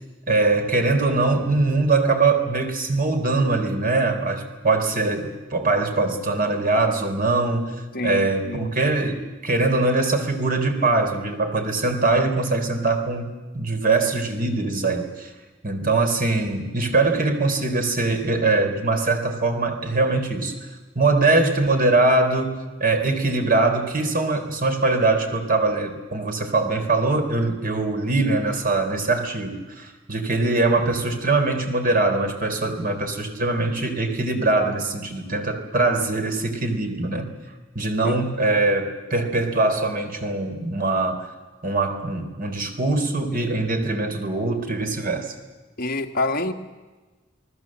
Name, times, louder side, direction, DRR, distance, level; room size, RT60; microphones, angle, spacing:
voice 1, 0.3-15.3 15.6-20.6 21.0-37.3 37.8-41.3 41.6-45.3, right 3 dB, 45° right, 5 dB, 3.7 m, -22 dB
voice 2, 7.9-8.7 38.0-38.2 45.8-46.5, left 2 dB, 50° left, 3 dB, 2.0 m, -26 dB
29.0 x 19.5 x 7.6 m, 1.2 s
head